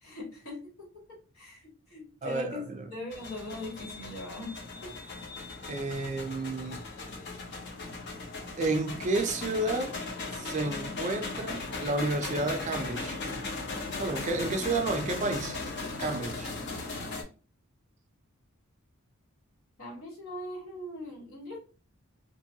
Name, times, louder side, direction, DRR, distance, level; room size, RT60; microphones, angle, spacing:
voice 1, 0.0-0.9 1.3-4.6 4.8-4.9 10.7-10.9 19.8-21.6, left 1 dB, 90° left, 1.4 m, -41 dB
voice 2, 2.2-2.9 5.7-6.8 8.6-9.9 10.4-13.2 14.0-15.6 16.0-16.5, right 2 dB, 35° right, 0.4 m, -31 dB
sound 1, 3.1-17.2, left 3 dB, 55° left, 0.7 m, -38 dB
2.9 x 2.2 x 2.7 m
head